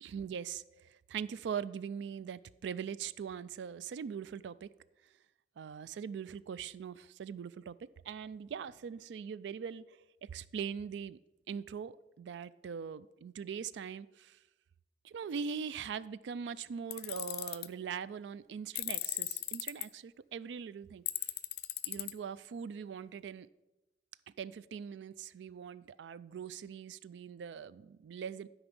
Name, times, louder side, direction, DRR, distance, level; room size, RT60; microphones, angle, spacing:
voice 1, 0.0-4.7 5.6-11.2 11.5-14.4 15.0-21.0 21.8-23.5 24.4-28.5, right 7 dB, 85° right, 18 dB, 0.3 m, -41 dB
Tools, 16.9-17.7 18.7-19.8 21.1-22.1, left 16 dB, 60° left, 0.4 m, -36 dB
12.0 x 5.0 x 5.3 m, 1.0 s
head